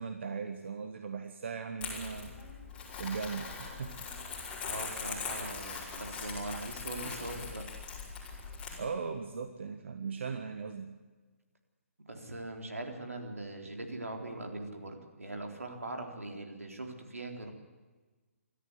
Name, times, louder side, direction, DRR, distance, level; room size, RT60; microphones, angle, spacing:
voice 1, 0.0-2.3 3.0-4.1 8.8-10.9, right 5 dB, 55° right, 6 dB, 1.6 m, -38 dB
Crumpling crinkling, 1.8-8.8, left 5 dB, 15° left, 5.0 m, -41 dB
voice 2, 4.6-7.7 12.1-17.5, right 2 dB, 80° right, 3 dB, 3.9 m, -41 dB
26.0 x 13.5 x 8.3 m, 1.3 s
figure-of-eight pair, 135°, 8 cm